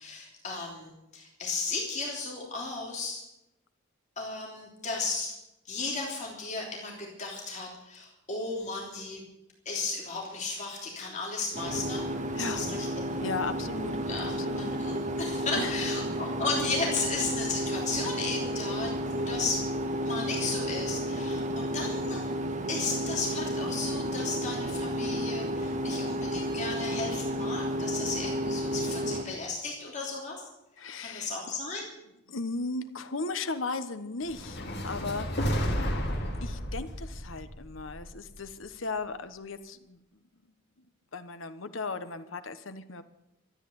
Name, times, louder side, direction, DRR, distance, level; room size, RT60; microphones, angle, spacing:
voice 1, 0.0-3.2 4.2-5.3 5.7-9.2 9.6-12.1 12.4-13.0 14.1-19.6 20.0-22.2 22.7-30.4 31.0-31.9, left 3 dB, 40° left, -2 dB, 3.3 m, -35 dB
sound 1, 11.5-29.2, equal, 40° right, 1.7 m, -32 dB
voice 2, 12.3-12.7 13.2-14.9 15.6-16.3 30.8-31.3 32.3-35.6 36.4-40.2 40.8-40.9 41.1-43.0, left 3 dB, 85° left, 11 dB, 1.2 m, -37 dB
sound 2, 34.3-38.5, equal, 60° left, 2.4 m, -32 dB
13.5 x 10.0 x 9.5 m, 0.90 s
head